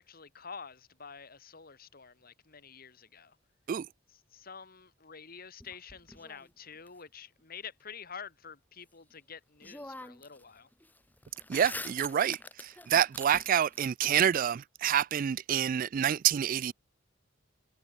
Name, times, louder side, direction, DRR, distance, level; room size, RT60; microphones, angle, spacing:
voice 1, 0.0-3.4 4.3-10.7, left 6 dB, 50° left, 2.1 m, -48 dB
sound 1, 5.6-6.9 9.1-9.2 9.6-10.4 10.7-13.9, left 2 dB, 10° left, 2.4 m, -45 dB
voice 2, 11.5-16.7, right 9 dB, 45° right, 0.3 m, -27 dB
head